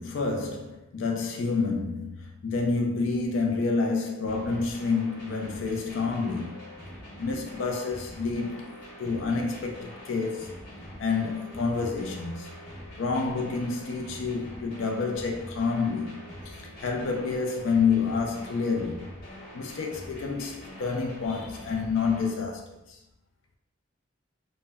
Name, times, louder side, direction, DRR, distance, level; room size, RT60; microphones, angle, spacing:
voice 1, 0.0-6.6 7.2-10.6 11.0-12.5 13.0-19.2 19.5-23.0, left 4 dB, 85° left, 0.4 m, -29 dB
sound 1, 4.3-22.3, equal, 45° left, 1.0 m, -44 dB
2.0 x 2.0 x 3.4 m
head